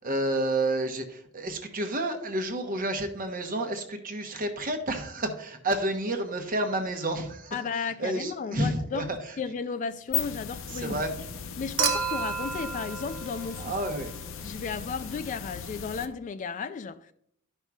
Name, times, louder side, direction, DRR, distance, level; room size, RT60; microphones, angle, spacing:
voice 1, 0.0-9.4 10.7-11.1 13.6-14.1, right 1 dB, 40° right, 1.0 m, -30 dB
voice 2, 7.5-9.1 9.4-11.3 11.6-13.8 14.4-17.1, left 5 dB, 35° left, 0.3 m, -34 dB
sound 1, 9.9-16.1, left 8 dB, 65° left, 0.6 m, -37 dB
Human group actions / Chink clink / Liquid, 11.8-14.2 15.7-15.8, right 6 dB, 65° right, 0.9 m, -31 dB
12.5 x 5.4 x 2.4 m
head